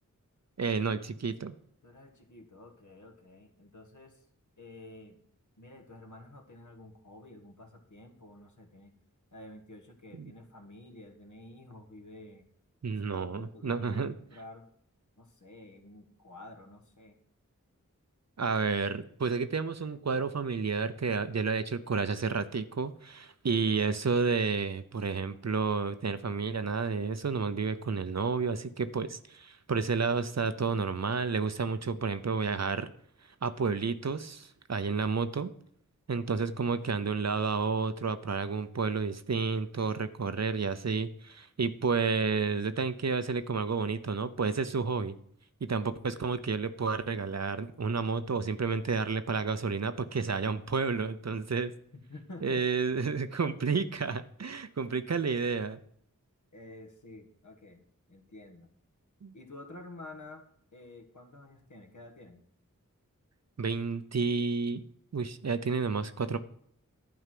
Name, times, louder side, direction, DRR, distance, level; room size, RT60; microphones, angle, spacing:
voice 1, 0.6-1.5 10.1-10.3 12.8-14.1 18.4-32.9 33.4-35.5 36.1-45.2 45.6-51.7 52.4-55.8 59.2-59.3 63.6-64.8 65.1-66.4, right 4 dB, 55° right, 11 dB, 0.7 m, -31 dB
voice 2, 1.8-4.3 4.6-5.2 5.6-8.9 9.3-12.5 13.1-14.7 15.2-17.2 51.9-52.6 56.5-57.8 58.1-58.7 59.3-60.5 60.7-62.4, left 2 dB, 65° left, 4 dB, 1.6 m, -50 dB
11.0 x 4.7 x 7.6 m, 0.65 s
wide cardioid pair, 60°, 32 cm